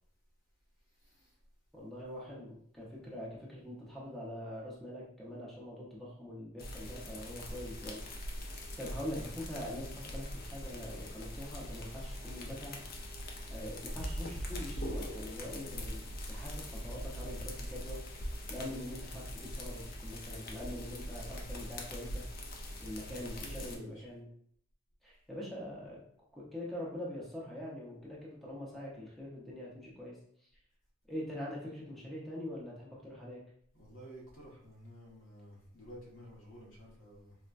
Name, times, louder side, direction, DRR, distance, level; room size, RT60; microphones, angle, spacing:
voice 1, 0.9-1.4 23.0-24.1 33.7-37.4, equal, 90° left, -4 dB, 1.1 m, -52 dB
voice 2, 1.7-8.0 8.8-12.8 13.5-18.0 18.5-22.2 22.8-24.3 25.0-26.0 26.3-30.5 31.1-33.4, left 1 dB, ahead, -5 dB, 0.7 m, -43 dB
sound 1, 6.6-23.8, equal, 50° left, 0.5 m, -42 dB
4.2 x 2.1 x 2.4 m, 0.66 s
head